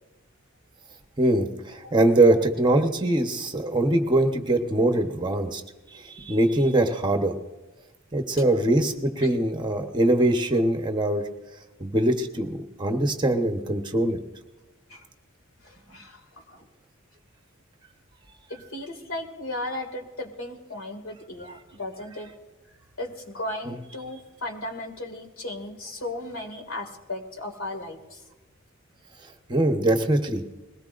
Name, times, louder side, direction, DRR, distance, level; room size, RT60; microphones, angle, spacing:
voice 1, 1.2-5.6 5.9-7.3 8.1-11.2 11.8-14.2 23.7-23.8 29.5-30.4, right 1 dB, 20° right, 5 dB, 1.0 m, -22 dB
voice 2, 15.6-16.7 18.5-22.3 23.0-28.2, left 1 dB, 80° left, 4 dB, 2.3 m, -36 dB
21.0 x 18.5 x 2.5 m, 1.1 s
head